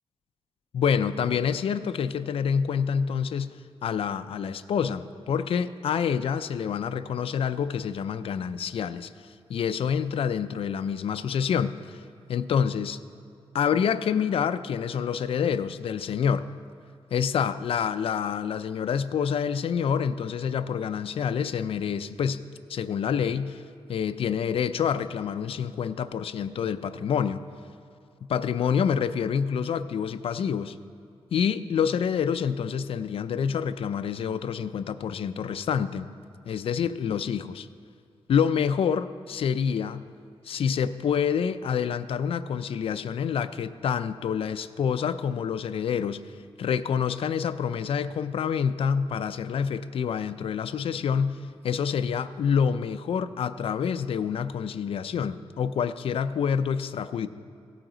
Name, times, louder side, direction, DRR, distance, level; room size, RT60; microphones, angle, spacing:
voice 1, 0.7-9.1 9.5-12.0 12.3-13.0 13.5-16.5 17.1-22.4 22.7-23.6 23.9-27.4 28.3-30.8 31.3-36.1 36.5-37.7 38.3-40.0 40.4-46.2 46.6-57.3, left 7 dB, 65° left, 11 dB, 0.4 m, -27 dB
16.5 x 8.9 x 3.9 m, 2.5 s
wide cardioid pair, 150°, 10 cm